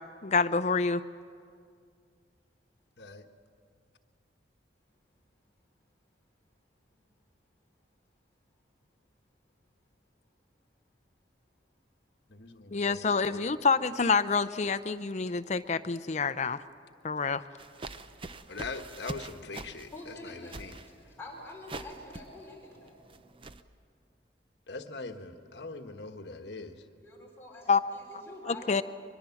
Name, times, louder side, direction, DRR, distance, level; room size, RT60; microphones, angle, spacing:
voice 1, 0.2-1.0 12.7-16.6 17.0-17.4 27.7-27.8 28.5-28.8, left 4 dB, 40° left, 12 dB, 0.6 m, -27 dB
voice 2, 12.3-13.4 18.5-20.7 24.7-26.9, left 3 dB, 65° left, 6 dB, 1.3 m, -42 dB
sound 1, 17.6-23.6, right 2 dB, 30° right, 0.6 m, -44 dB
voice 3, 19.9-20.6 21.2-23.0 27.0-28.8, left 2 dB, 15° left, -2 dB, 4.1 m, -46 dB
23.0 x 22.0 x 7.1 m, 2.3 s
head